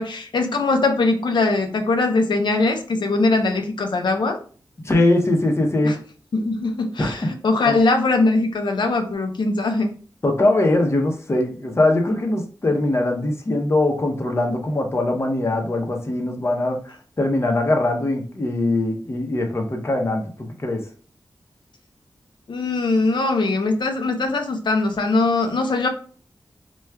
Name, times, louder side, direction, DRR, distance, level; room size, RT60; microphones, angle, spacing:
voice 1, 0.0-4.4 5.8-6.0 6.3-10.0 22.5-25.9, left 3 dB, 85° left, 5 dB, 0.6 m, -21 dB
voice 2, 4.8-6.0 7.0-7.1 7.7-7.8 10.2-20.2 20.6-20.8, left 2 dB, 35° left, 2 dB, 0.7 m, -21 dB
4.5 x 2.3 x 2.2 m, 0.41 s
wide cardioid pair, 90°, 8 cm